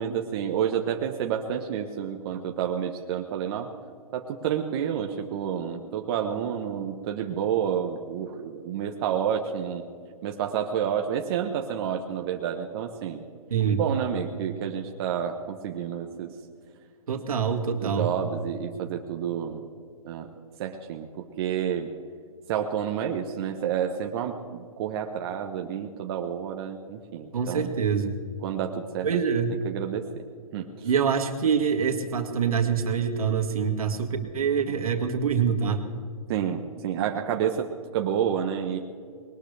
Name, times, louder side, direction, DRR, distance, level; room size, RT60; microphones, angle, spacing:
voice 1, 0.0-3.7 4.1-9.8 10.2-13.2 13.8-16.3 17.8-19.6 20.0-20.3 20.6-21.9 22.5-27.7 28.4-29.1 29.6-30.1 30.5-30.9 36.3-38.8, right 8 dB, 40° right, 3 dB, 1.1 m, -29 dB
voice 2, 13.5-13.8 17.1-18.1 27.3-28.2 29.0-29.6 30.8-35.8, right 6 dB, 75° right, 5 dB, 2.2 m, -25 dB
21.0 x 19.0 x 3.4 m, 2.3 s
hypercardioid pair, 135°, 19 cm